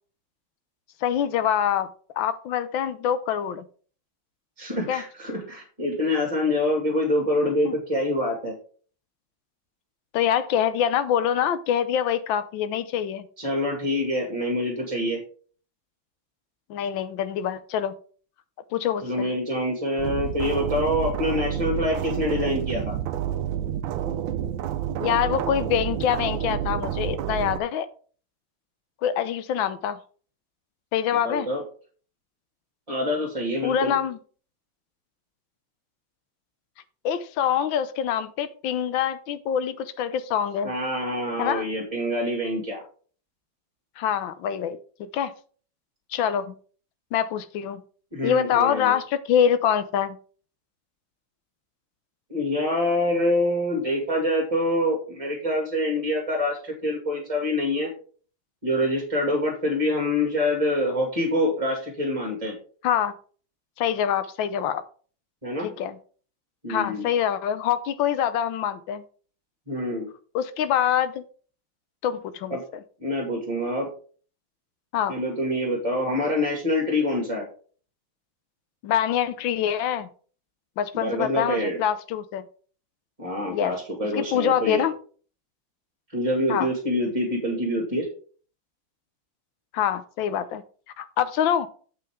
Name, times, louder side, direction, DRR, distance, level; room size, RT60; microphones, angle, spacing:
voice 1, 1.0-1.9 2.2-3.6 4.9-5.0 7.6-7.8 10.1-13.2 16.7-17.9 18.7-19.3 25.0-27.9 29.0-30.0 30.9-31.5 33.6-34.2 37.0-40.7 41.4-41.6 44.0-44.8 45.1-45.3 46.1-46.5 47.1-47.8 48.2-50.2 62.8-63.1 63.8-64.8 65.6-66.0 66.7-69.0 70.3-71.2 72.0-72.8 74.9-75.2 78.8-80.1 80.8-82.4 83.5-83.8 84.1-84.9 86.5-86.7 89.7-90.6 91.0-91.7, left 9 dB, 75° left, 13 dB, 1.5 m, -25 dB
voice 2, 4.6-8.5 13.4-15.2 19.0-22.9 31.2-31.6 32.9-34.0 40.6-42.8 48.1-48.9 52.3-57.9 58.6-62.5 65.4-65.7 66.6-67.1 69.7-70.1 72.5-72.6 73.0-73.9 75.1-77.5 80.9-81.8 83.2-84.9 86.1-88.1, left 1 dB, 15° right, 0 dB, 2.2 m, -26 dB
sound 1, 20.0-27.6, right 10 dB, 80° right, 1.4 m, -29 dB
8.1 x 7.8 x 3.6 m, 0.42 s
omnidirectional pair, 2.1 m